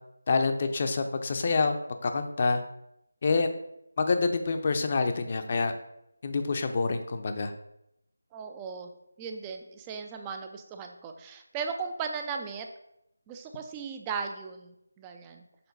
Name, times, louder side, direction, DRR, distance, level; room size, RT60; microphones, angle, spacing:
voice 1, 0.3-1.8 2.0-2.6 3.2-3.5 4.0-5.7 6.2-7.5, left 4 dB, 35° left, 7 dB, 0.6 m, -27 dB
voice 2, 8.3-8.9 9.2-12.7 13.3-15.4, right 5 dB, 15° right, 5 dB, 0.5 m, -37 dB
6.9 x 3.8 x 5.3 m, 0.82 s
figure-of-eight pair, 165°, 0 cm